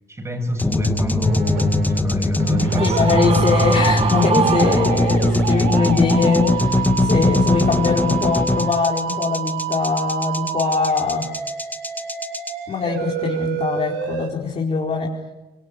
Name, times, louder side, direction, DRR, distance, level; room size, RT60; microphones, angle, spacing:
voice 1, 0.1-3.3 3.9-4.1, right 1 dB, 15° right, 6 dB, 7.9 m, -26 dB
sound 1, 0.6-12.5, left 2 dB, 10° left, 2.1 m, -20 dB
sound 2, 1.2-2.0 2.4-14.3, right 10 dB, 90° right, 3.5 m, -29 dB
Screaming, 2.7-5.4, right 7 dB, 35° right, 1.0 m, -24 dB
voice 2, 2.8-11.3 12.7-15.1, left 5 dB, 40° left, -1 dB, 4.5 m, -22 dB
26.5 x 24.0 x 9.4 m, 1.1 s
cardioid pair, 110°, 17 cm